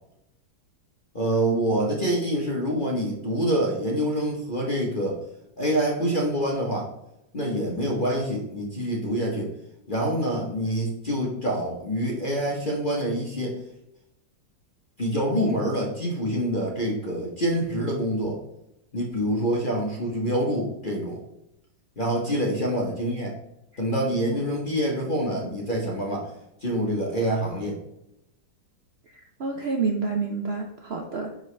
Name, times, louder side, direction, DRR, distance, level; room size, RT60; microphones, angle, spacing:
voice 1, 1.1-5.2 5.6-6.9 7.3-9.5 9.9-13.6 15.0-18.4 18.9-21.2 22.0-23.3 23.8-26.3 26.6-27.8, equal, 35° left, -2 dB, 1.0 m, -26 dB
voice 2, 29.4-31.4, right 4 dB, 80° right, 2 dB, 0.5 m, -28 dB
10.0 x 3.9 x 3.3 m, 0.83 s
omnidirectional pair, 1.9 m